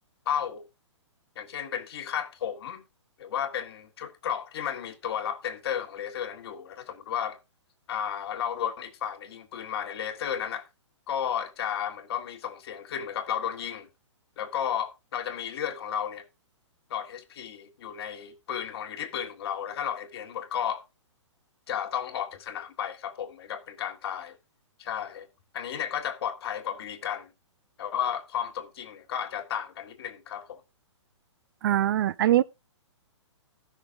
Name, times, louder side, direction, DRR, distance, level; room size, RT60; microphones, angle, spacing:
voice 1, 0.3-0.7 1.4-2.8 3.2-7.4 7.9-10.7 11.1-13.9 14.4-16.2 16.9-20.8 21.7-24.4 24.8-25.3 25.5-27.3 27.8-30.6, left 9 dB, 55° left, 1.9 m, -33 dB
voice 2, 31.6-32.4, right 12 dB, 45° right, 0.4 m, -22 dB
14.5 x 6.3 x 3.7 m
hypercardioid pair, 150°, 16 cm